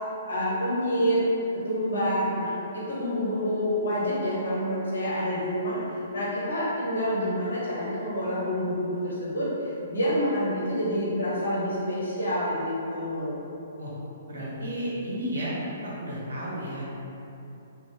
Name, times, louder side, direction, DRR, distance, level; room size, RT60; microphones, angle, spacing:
voice 1, 0.3-1.2 1.6-13.4, equal, 80° left, -8 dB, 1.2 m, -28 dB
voice 2, 14.3-15.5 15.8-16.8, equal, 80° right, -6 dB, 1.2 m, -32 dB
3.3 x 2.7 x 3.0 m, 2.9 s
hypercardioid pair, 130°, 0 cm